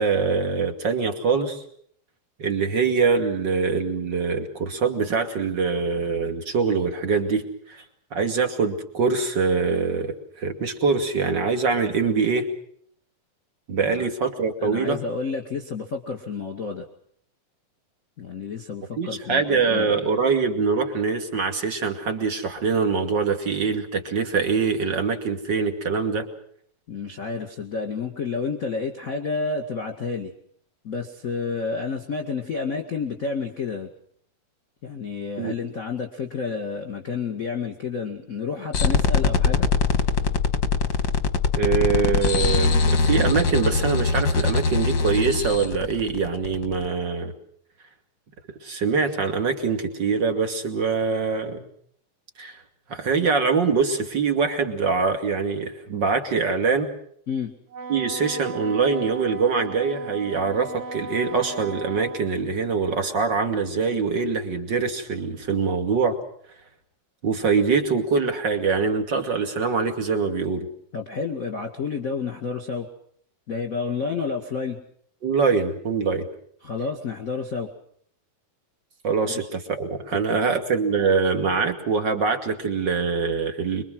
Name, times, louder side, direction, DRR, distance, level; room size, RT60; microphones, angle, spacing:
voice 1, 0.0-1.6 2.4-7.8 8.1-12.5 13.7-15.0 19.0-26.3 35.4-35.5 41.6-47.3 48.6-51.6 52.4-52.6 52.9-56.9 57.9-66.2 67.2-70.7 75.2-76.3 79.0-83.8, right 5 dB, 35° right, 6 dB, 2.6 m, -24 dB
voice 2, 14.6-16.9 18.2-20.0 26.9-30.3 30.8-33.9 34.8-39.7 57.3-57.5 70.9-72.9 73.5-74.8 76.6-77.7 79.3-79.5 80.1-80.6, left 5 dB, 30° left, 3 dB, 2.0 m, -30 dB
sound 1, 38.7-46.9, left 4 dB, 45° left, 1.7 m, -22 dB
Wind instrument woodwind instrument, 57.7-62.3, right 5 dB, 65° right, 2.2 m, -36 dB
26.0 x 23.5 x 6.3 m, 0.64 s
omnidirectional pair, 4.0 m